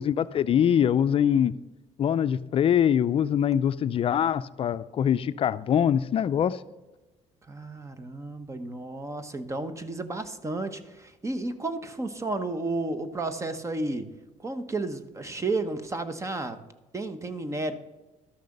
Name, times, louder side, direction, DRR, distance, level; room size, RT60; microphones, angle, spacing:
voice 1, 0.0-1.5 2.0-6.6, left 9 dB, 45° left, 0.4 m, -23 dB
voice 2, 7.5-14.1 14.4-16.6 16.9-17.7, right 2 dB, 25° right, 0.9 m, -32 dB
12.5 x 6.6 x 6.5 m
cardioid pair, 95°, 13 cm